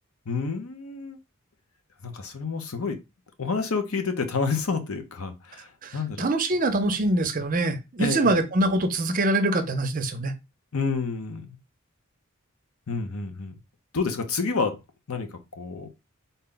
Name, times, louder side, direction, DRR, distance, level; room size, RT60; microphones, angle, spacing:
voice 1, 0.3-1.2 2.0-3.0 3.4-5.6 5.9-6.2 8.0-8.3 10.7-11.6 12.9-13.5 13.9-14.8 15.1-15.3 15.6-15.9, left 4 dB, 80° left, 0.8 m, -29 dB
voice 2, 5.8-10.3, right 2 dB, 40° right, 0.6 m, -24 dB
4.0 x 2.2 x 3.8 m
head